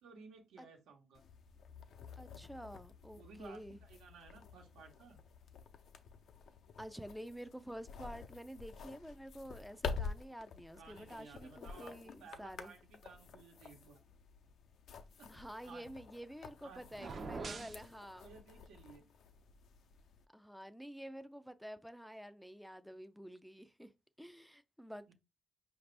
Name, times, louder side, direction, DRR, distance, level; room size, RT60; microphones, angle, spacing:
voice 1, 0.0-1.2 3.2-5.2 10.7-14.0 15.2-15.8 16.6-17.8 18.2-19.1 25.1-25.2, right 5 dB, 85° right, 1.2 m, -56 dB
sound 1, 1.1-20.3, left 5 dB, 65° left, 0.5 m, -49 dB
voice 2, 2.2-3.8 6.8-12.7 15.3-18.3 20.3-23.9 24.2-25.1, equal, ahead, 0.4 m, -49 dB
sound 2, 16.9-17.8, right 4 dB, 45° right, 0.6 m, -44 dB
5.0 x 2.6 x 3.3 m
cardioid pair, 90°, 0 cm